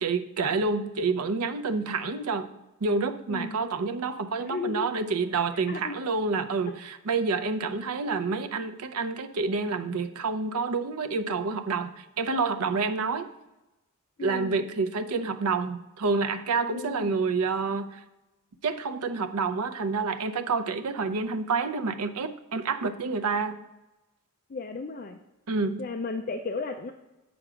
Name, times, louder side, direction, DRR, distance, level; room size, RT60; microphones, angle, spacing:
voice 1, 0.0-2.5 2.8-13.3 14.2-18.0 18.6-23.6 25.5-25.8, right 4 dB, 85° right, 8 dB, 0.6 m, -28 dB
voice 2, 3.3-3.7 4.5-4.9 5.7-6.0 6.7-6.8 14.2-14.7 16.7-17.1 24.5-25.2 25.8-26.9, left 3 dB, 40° left, 5 dB, 0.4 m, -34 dB
7.8 x 6.0 x 4.9 m, 1.0 s
head